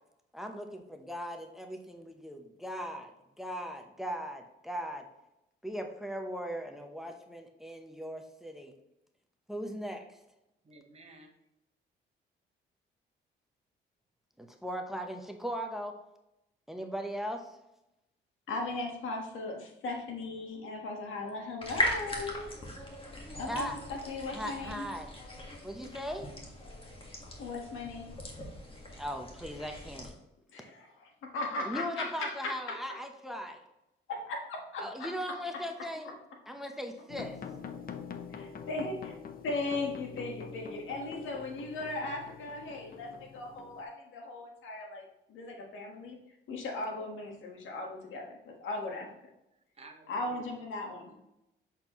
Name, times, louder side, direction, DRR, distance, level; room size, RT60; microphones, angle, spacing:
voice 1, 0.3-3.1 3.4-5.0 5.6-8.7 9.5-10.0 14.4-15.9 16.7-17.4 23.3-23.8 24.3-25.1 25.6-26.3 28.9-30.1 31.6-33.6 34.8-36.1 36.5-37.4, equal, ahead, 4 dB, 0.8 m, -38 dB
voice 2, 10.6-11.3 49.7-50.5 51.1-51.2, right 2 dB, 30° right, 2 dB, 1.2 m, -52 dB
voice 3, 18.5-22.5 23.4-24.9 27.4-28.1 30.5-32.8 34.1-35.1 38.7-38.9 39.4-46.2 46.5-49.1 50.1-51.1, left 2 dB, 80° left, 1 dB, 1.4 m, -37 dB
sound 1, 21.6-30.1, left 1 dB, 25° left, 1.6 m, -39 dB
sound 2, 37.1-43.8, left 6 dB, 45° left, 0.7 m, -45 dB
7.4 x 4.4 x 3.0 m, 0.88 s
cardioid pair, 90°, 20 cm